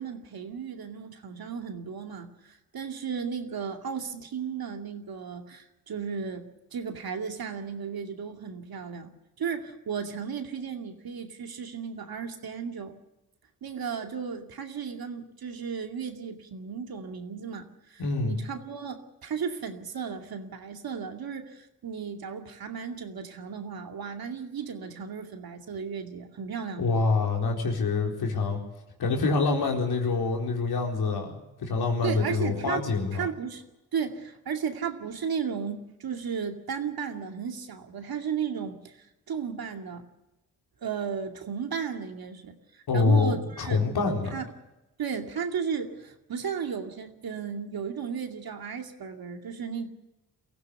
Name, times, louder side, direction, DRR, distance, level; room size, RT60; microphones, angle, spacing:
voice 1, 0.0-9.1 9.4-13.0 13.6-26.9 32.0-32.9 33.1-33.6 33.9-40.1 40.8-43.8 44.3-44.5 45.0-49.9, right 6 dB, 70° right, 5 dB, 2.5 m, -35 dB
voice 2, 18.0-18.3 26.8-28.6 29.0-31.3 31.6-33.3 42.9-44.4, left 4 dB, 80° left, 1 dB, 4.3 m, -26 dB
23.5 x 15.5 x 8.1 m, 0.99 s
cardioid pair, 70°, 37 cm